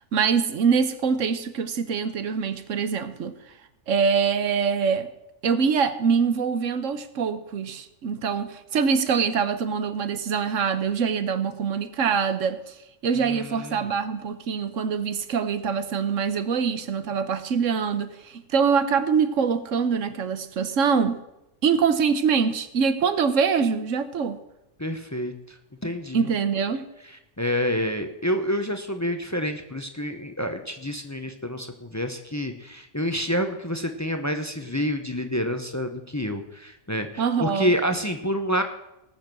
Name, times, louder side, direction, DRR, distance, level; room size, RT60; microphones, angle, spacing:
voice 1, 0.1-3.3 3.9-5.1 5.4-12.7 13.0-21.2 21.6-24.4 26.1-26.8 37.2-37.7, right 6 dB, 85° right, 12 dB, 1.3 m, -24 dB
voice 2, 13.2-13.9 24.8-25.6 25.8-26.3 27.4-38.6, equal, 15° left, 7 dB, 0.9 m, -28 dB
19.0 x 7.3 x 6.2 m, 0.87 s
omnidirectional pair, 1.3 m